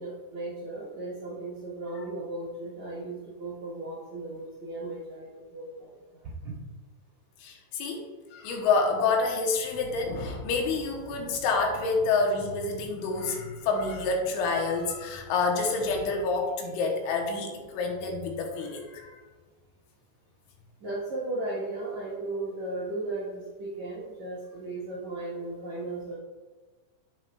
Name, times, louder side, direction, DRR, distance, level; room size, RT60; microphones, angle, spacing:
voice 1, 0.0-5.9 6.2-6.6 20.8-26.2, right 2 dB, 65° right, -7 dB, 1.8 m, -36 dB
voice 2, 7.4-19.1, left 4 dB, 90° left, 1 dB, 3.3 m, -28 dB
9.3 x 7.6 x 2.3 m, 1.3 s
omnidirectional pair, 5.4 m